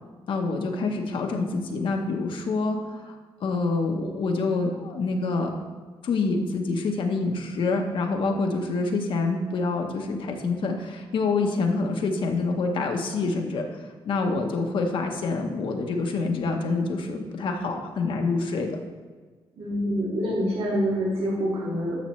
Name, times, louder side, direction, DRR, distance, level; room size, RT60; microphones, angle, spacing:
voice 1, 0.3-5.5 6.0-13.8 14.0-18.8, left 3 dB, 65° left, 2 dB, 0.9 m, -26 dB
voice 2, 19.6-22.0, equal, 90° right, -4 dB, 2.1 m, -26 dB
11.0 x 6.8 x 3.1 m, 1.4 s
wide cardioid pair, 170°, 9 cm